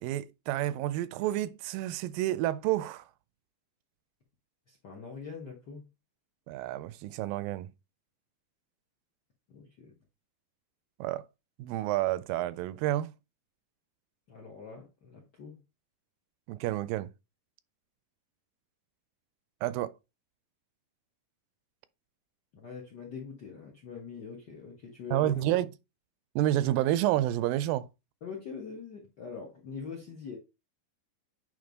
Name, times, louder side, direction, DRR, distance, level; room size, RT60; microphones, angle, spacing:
voice 1, 0.0-3.0 6.5-7.7 11.0-11.2 11.6-13.1 16.5-17.1 19.6-19.9 25.1-25.7 26.4-27.9, right 14 dB, 85° right, 2.2 m, -29 dB
voice 2, 4.7-5.8 9.5-9.9 14.3-15.6 22.5-25.4 28.2-30.4, left 5 dB, 60° left, 1.1 m, -43 dB
8.9 x 3.4 x 3.9 m
omnidirectional pair, 4.0 m